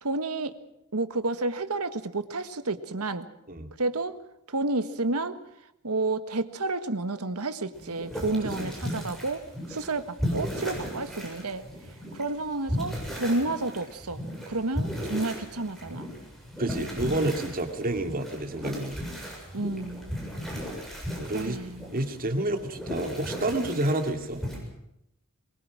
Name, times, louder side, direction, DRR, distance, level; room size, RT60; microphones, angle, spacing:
voice 1, 0.0-0.6 0.9-3.3 3.8-4.2 4.5-5.4 5.8-11.6 12.1-14.2 14.5-16.1 19.5-20.1 21.3-21.9, right 2 dB, 90° right, 10 dB, 1.6 m, -30 dB
sound 1, 7.7-24.6, equal, ahead, 7.1 m, -36 dB
voice 2, 16.6-19.0 21.2-21.6 21.9-24.4, right 1 dB, 40° right, 6 dB, 2.4 m, -29 dB
23.0 x 22.0 x 6.1 m, 0.82 s
head